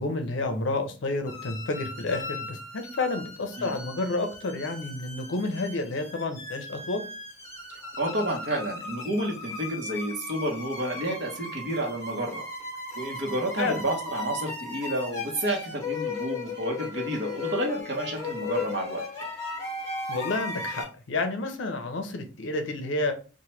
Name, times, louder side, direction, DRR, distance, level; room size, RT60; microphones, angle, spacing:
voice 1, 0.0-7.0 13.6-13.8 20.1-23.1, left 2 dB, 70° left, 7 dB, 0.5 m, -30 dB
sound 1, 1.3-20.8, left 3 dB, 15° left, 0.9 m, -37 dB
voice 2, 8.0-12.4 12.9-19.0, right 1 dB, 55° right, 1 dB, 0.7 m, -30 dB
2.9 x 2.1 x 3.1 m, 0.36 s
head